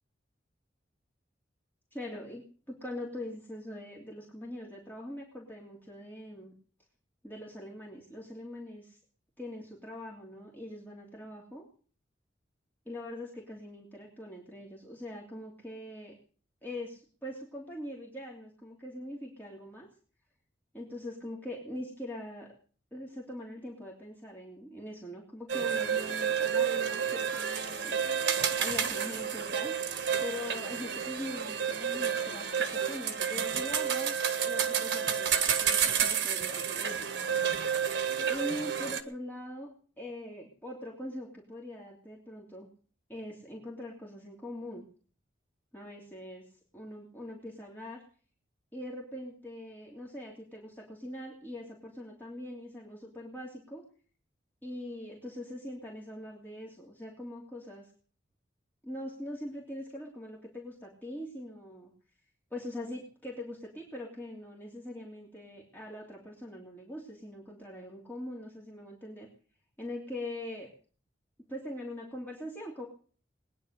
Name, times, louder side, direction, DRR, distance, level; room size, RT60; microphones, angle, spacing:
voice 1, 1.9-6.5 7.2-9.0 9.4-11.6 12.9-16.1 16.6-19.9 20.7-22.5 22.9-28.3 28.6-29.8 30.2-34.1 34.4-37.0 38.3-39.7 40.0-42.7 43.1-44.8 45.7-46.5 46.7-48.0 48.7-53.8 54.6-57.9 58.8-61.9 62.5-69.3 69.8-70.7 71.5-72.9, left 1 dB, 10° left, -3 dB, 3.0 m, -42 dB
sound 1, 25.5-39.0, right 7 dB, 75° right, 1.5 m, -30 dB
20.5 x 10.0 x 6.7 m, 0.43 s
head